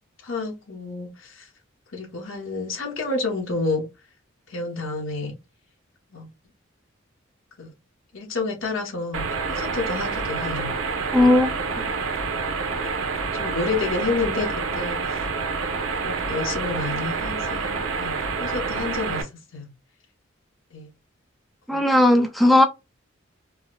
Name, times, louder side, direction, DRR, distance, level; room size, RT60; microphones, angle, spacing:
voice 1, 0.2-1.5 1.9-3.9 4.5-5.3 6.1-6.3 7.6-7.7 8.1-10.7 11.8-11.9 13.3-15.2 16.0-19.3 19.5-19.7 20.7-20.9 21.7-21.8, left 3 dB, 75° left, 1.0 m, -29 dB
sound 1, 9.1-19.2, right 4 dB, 90° right, 0.7 m, -28 dB
voice 2, 11.1-11.5 21.7-22.6, left 1 dB, ahead, 0.3 m, -16 dB
4.5 x 2.1 x 2.3 m
head